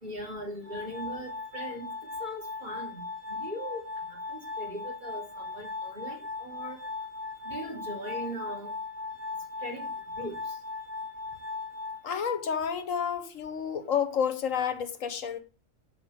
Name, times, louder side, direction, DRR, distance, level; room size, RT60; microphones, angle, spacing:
voice 1, 0.0-1.9 2.2-6.8 7.4-8.7 9.6-9.9 10.2-10.6, equal, 35° right, 3.7 m, -39 dB
Glass, 0.6-12.7, left 3 dB, 50° right, 2.1 m, -38 dB
voice 2, 12.0-15.4, left 7 dB, 80° left, 1.6 m, -30 dB
8.7 x 7.8 x 8.0 m
omnidirectional pair, 1.3 m